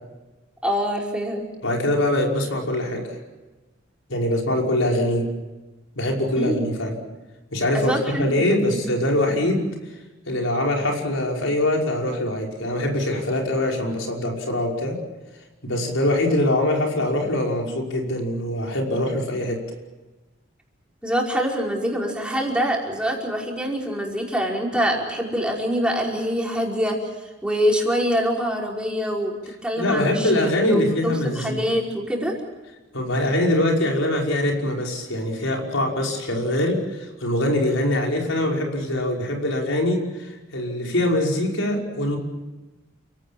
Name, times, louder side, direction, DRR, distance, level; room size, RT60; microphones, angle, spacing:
voice 1, 0.6-1.4 6.4-6.7 7.7-8.8 21.0-27.1 27.4-29.3 29.6-30.3 30.7-32.4, equal, 5° right, -2 dB, 5.3 m, -25 dB
voice 2, 1.6-3.2 4.1-5.3 6.0-7.0 7.5-9.6 10.3-15.0 15.6-19.6 29.8-31.6 32.9-42.2, left 1 dB, 85° left, 0 dB, 5.6 m, -23 dB
30.0 x 17.5 x 8.7 m, 1.2 s
head